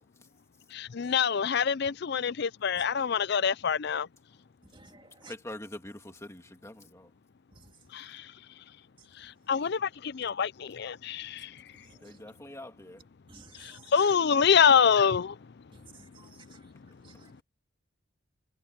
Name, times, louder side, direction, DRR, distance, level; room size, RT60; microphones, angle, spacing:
voice 1, 0.7-4.1 7.9-8.3 9.1-11.8 13.5-15.6 16.6-16.7 17.0-17.2, left 7 dB, 55° left, 0.5 m, -26 dB
voice 2, 4.6-5.3 7.5-7.9 9.0-9.3 11.7-12.2 13.3-14.2 15.7-17.4, right 4 dB, 25° right, 2.2 m, -55 dB
voice 3, 5.3-7.1 12.0-13.0, left 1 dB, 15° left, 2.2 m, -44 dB
head